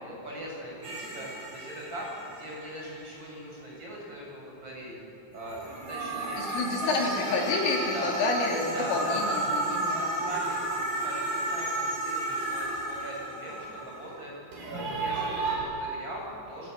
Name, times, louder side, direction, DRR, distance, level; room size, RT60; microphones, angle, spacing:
voice 1, 0.0-5.0 5.3-7.3 7.9-8.2 8.7-9.4 9.8-16.7, right 1 dB, 20° right, -3 dB, 8.0 m, -40 dB
sound 1, 0.8-3.1 5.3-14.1 14.5-15.6, right 2 dB, 45° right, 7.2 m, -32 dB
voice 2, 6.4-10.0, left 3 dB, 75° left, 0 dB, 5.7 m, -29 dB
28.0 x 20.5 x 9.5 m, 3.0 s
omnidirectional pair, 5.9 m